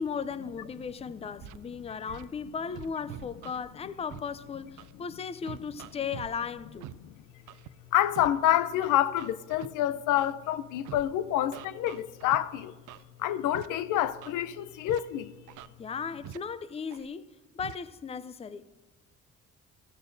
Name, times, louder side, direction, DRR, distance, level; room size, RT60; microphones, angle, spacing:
voice 1, 0.0-6.9 15.8-18.6, left 6 dB, 20° left, 0.4 m, -36 dB
Scratching (performance technique), 1.4-1.6 2.1-2.3 2.8-3.6 4.1-4.2 4.8-4.9 5.5-6.3 6.8-6.9 7.5-7.7 8.2-8.3 8.8-9.7 10.2-10.3 10.9-11.0 11.5-12.4 12.9-13.0 13.5-13.7 14.0-14.3 14.9-15.0 15.5-15.7 16.2-16.4 16.9-17.1 17.6-17.8, right 13 dB, 85° right, 0.5 m, -44 dB
voice 2, 7.9-12.7 13.2-15.3, left 12 dB, 90° left, 0.6 m, -27 dB
15.5 x 14.5 x 2.6 m
cardioid pair, 90°, 30 cm